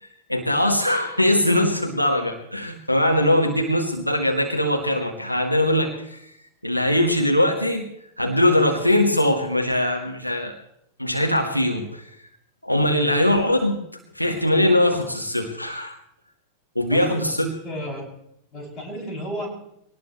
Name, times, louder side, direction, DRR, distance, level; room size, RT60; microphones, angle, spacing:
voice 1, 0.0-6.3 6.6-7.9 8.2-10.6 11.0-12.1 12.6-13.8 14.1-16.0 16.7-17.5, left 1 dB, 90° left, 3 dB, 1.5 m, -21 dB
voice 2, 16.9-17.3 17.6-18.1 18.5-19.5, equal, 25° left, 0 dB, 7.2 m, -33 dB
23.0 x 18.5 x 3.2 m, 0.73 s
figure-of-eight pair, 90°, 0 cm